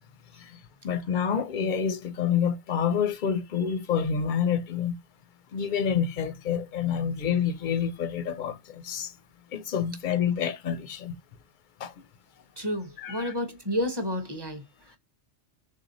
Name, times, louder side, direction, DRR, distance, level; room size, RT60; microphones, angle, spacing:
voice 1, 0.4-4.9 5.5-9.1 9.5-11.1 11.8-11.9 13.0-13.3, left 7 dB, 60° left, 0.5 m, -28 dB
voice 2, 12.6-15.0, left 1 dB, 25° right, 0.7 m, -31 dB
3.3 x 2.7 x 3.9 m
omnidirectional pair, 1.2 m